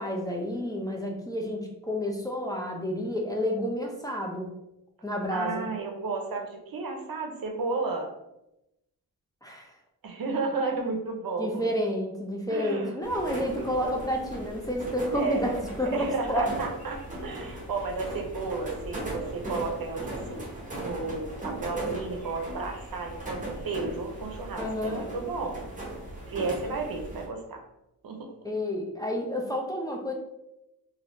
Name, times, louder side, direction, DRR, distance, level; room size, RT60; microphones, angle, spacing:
voice 1, 0.0-4.5 5.0-5.7 9.4-9.7 11.4-16.5 24.6-25.1 28.4-30.1, equal, 10° left, 0 dB, 0.6 m, -30 dB
voice 2, 5.3-8.1 10.0-11.6 12.5-13.0 13.2-14.1 15.1-15.5 15.8-20.5 20.8-25.6 26.3-27.6 28.0-28.3, right 4 dB, 65° right, 3 dB, 0.7 m, -33 dB
sound 1, 13.0-27.3, right 1 dB, 20° right, 1.0 m, -38 dB
3.2 x 2.7 x 2.6 m, 0.88 s
cardioid pair, 65°, 38 cm